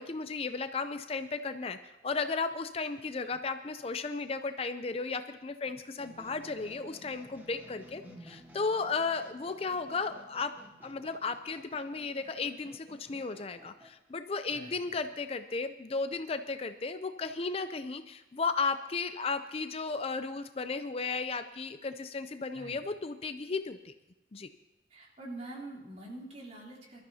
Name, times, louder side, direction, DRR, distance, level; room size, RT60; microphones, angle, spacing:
voice 1, 0.0-8.0 8.3-10.5 10.8-23.9 24.3-24.5, left 4 dB, 35° left, 10 dB, 0.5 m, -34 dB
sound 1, 6.0-13.9, right 1 dB, 10° right, 1.3 m, -55 dB
voice 2, 8.0-8.4 14.5-15.0 22.5-22.9 24.9-27.0, right 2 dB, 40° right, -3 dB, 3.2 m, -46 dB
23.0 x 13.0 x 2.8 m, 0.96 s
head